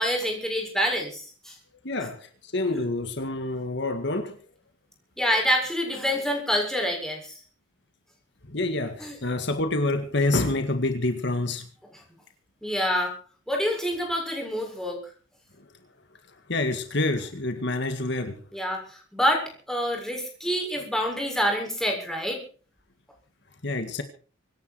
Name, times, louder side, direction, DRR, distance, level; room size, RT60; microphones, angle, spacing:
voice 1, 0.0-1.5 5.2-7.4 9.0-9.2 12.6-13.1 13.5-15.0 18.5-22.4, equal, ahead, 6.8 m, -27 dB
voice 2, 1.8-4.4 8.5-11.7 15.6-15.7 16.5-18.4 23.6-24.0, left 2 dB, 60° left, 1.9 m, -27 dB
25.5 x 11.0 x 4.7 m
head